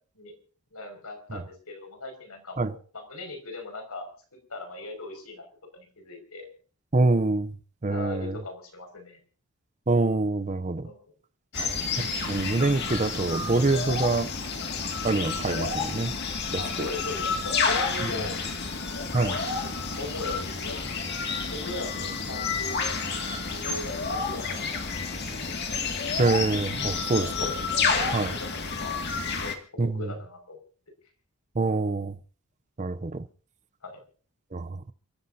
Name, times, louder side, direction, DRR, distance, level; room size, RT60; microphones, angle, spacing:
voice 1, 0.7-4.1 4.5-5.5 5.7-6.5 7.9-9.2 10.8-11.1 11.6-11.8 16.6-18.4 19.5-21.0 21.5-23.0 23.5-25.6 27.2-27.6 27.9-29.0 29.4-29.5 29.8-30.6 33.8-34.0, left 2 dB, 85° left, 5.8 m, -39 dB
voice 2, 6.9-7.5 7.8-8.4 9.9-10.9 12.3-14.3 15.0-16.1 16.5-16.9 18.0-18.1 19.1-19.4 26.2-27.3 28.1-28.3 29.8-30.1 31.6-32.2 32.8-33.3 34.5-34.8, right 3 dB, 35° right, 0.6 m, -25 dB
sound 1, 11.5-29.5, left 4 dB, 50° left, 2.2 m, -30 dB
29.0 x 15.0 x 2.8 m
head